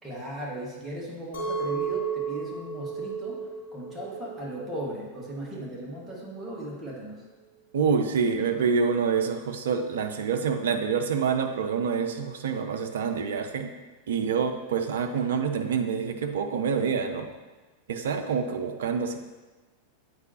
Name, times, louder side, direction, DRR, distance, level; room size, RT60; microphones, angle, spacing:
voice 1, 0.0-7.2, right 1 dB, 10° right, -4 dB, 1.6 m, -37 dB
Chink clink, 1.3-6.5, right 6 dB, 60° left, 1.3 m, -34 dB
voice 2, 7.7-13.7 14.1-17.3 17.9-19.2, right 6 dB, 60° right, 6 dB, 0.5 m, -27 dB
8.0 x 4.6 x 2.9 m, 1.2 s
figure-of-eight pair, 90°, 0 cm